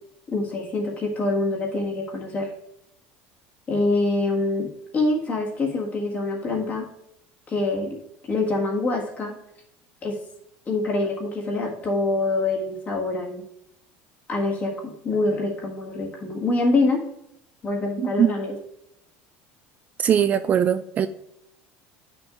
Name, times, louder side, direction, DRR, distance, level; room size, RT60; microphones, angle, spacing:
voice 1, 0.3-2.5 3.7-6.8 7.5-8.0 8.2-9.3 10.0-10.2 10.7-13.4 14.3-17.0 17.6-18.5, left 2 dB, 30° left, -1 dB, 1.6 m, -25 dB
voice 2, 18.0-18.3 20.0-21.1, right 9 dB, 30° right, 10 dB, 0.3 m, -20 dB
9.9 x 6.1 x 2.5 m, 0.80 s
cardioid pair, 135°, 5 cm